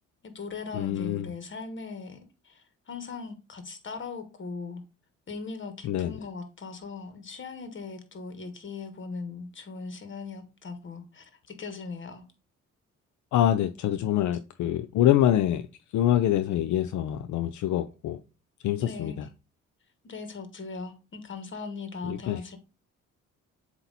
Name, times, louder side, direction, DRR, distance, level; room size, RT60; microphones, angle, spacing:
voice 1, 0.2-4.8 5.3-12.2 18.8-19.3 20.0-22.6, left 4 dB, 40° left, 1.6 m, -39 dB
voice 2, 0.7-1.3 5.8-6.1 13.3-15.7 15.9-18.2 18.6-19.2 22.0-22.4, left 12 dB, 75° left, 0.5 m, -25 dB
7.9 x 2.9 x 4.1 m
cardioid pair, 90°, 30 cm